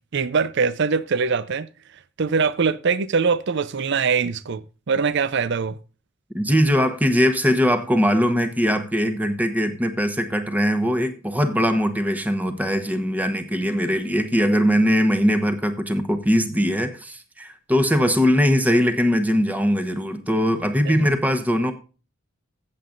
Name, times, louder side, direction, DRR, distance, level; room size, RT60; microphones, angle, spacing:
voice 1, 0.1-1.7 2.2-5.8 20.9-21.0, right 5 dB, 60° right, 0.5 m, -22 dB
voice 2, 6.3-21.7, equal, 10° right, 1.1 m, -21 dB
15.5 x 7.7 x 2.6 m
head